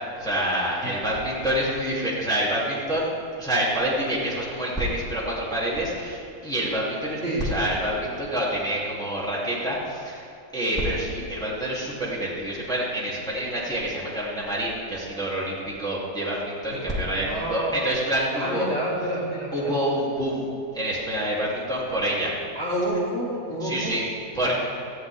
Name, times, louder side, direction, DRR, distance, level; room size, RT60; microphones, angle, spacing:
voice 1, 0.2-3.1 3.4-10.2 10.5-18.7 19.5-20.5 20.7-22.3 23.6-24.0 24.3-24.5, right 1 dB, ahead, -7 dB, 3.0 m, -27 dB
voice 2, 17.2-17.7 18.3-19.8 22.5-23.9 24.4-24.5, right 1 dB, 30° right, -7 dB, 3.1 m, -29 dB
19.5 x 14.5 x 3.7 m, 2.7 s
omnidirectional pair, 2.0 m